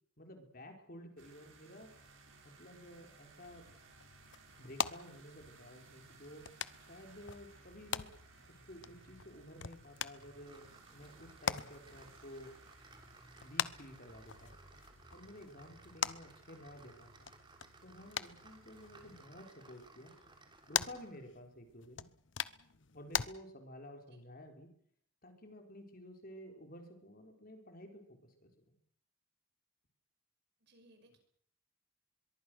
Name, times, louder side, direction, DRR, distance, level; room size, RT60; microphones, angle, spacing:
voice 1, 0.2-1.9 2.6-3.7 4.6-6.5 6.9-8.1 8.5-12.5 13.4-14.5 15.1-17.3 17.8-20.2 20.7-22.1 22.9-24.7 25.2-28.8, equal, 45° left, 4 dB, 4.7 m, -52 dB
sound 1, 1.2-19.2, right 3 dB, 75° right, 6.7 m, -61 dB
sound 2, 3.4-23.3, left 7 dB, 60° left, 0.9 m, -43 dB
sound 3, 10.2-21.3, right 3 dB, 25° right, 3.3 m, -61 dB
voice 2, 30.6-31.2, right 1 dB, 55° right, 7 dB, 5.4 m, -64 dB
24.0 x 22.5 x 6.5 m, 0.64 s
head